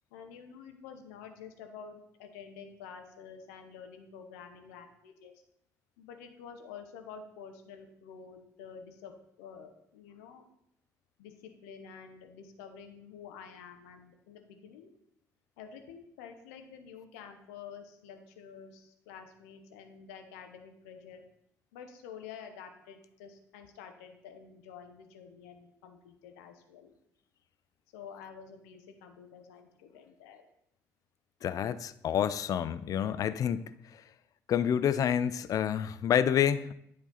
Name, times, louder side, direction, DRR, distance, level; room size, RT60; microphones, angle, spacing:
voice 1, 0.1-5.3 6.0-10.5 11.2-14.9 15.6-21.2 21.7-26.9 27.9-30.5, left 7 dB, 70° left, 6 dB, 0.9 m, -49 dB
voice 2, 31.4-33.7 34.5-36.7, left 9 dB, 45° left, 15 dB, 0.4 m, -28 dB
10.0 x 4.2 x 4.1 m, 0.76 s
figure-of-eight pair, 55°, 9 cm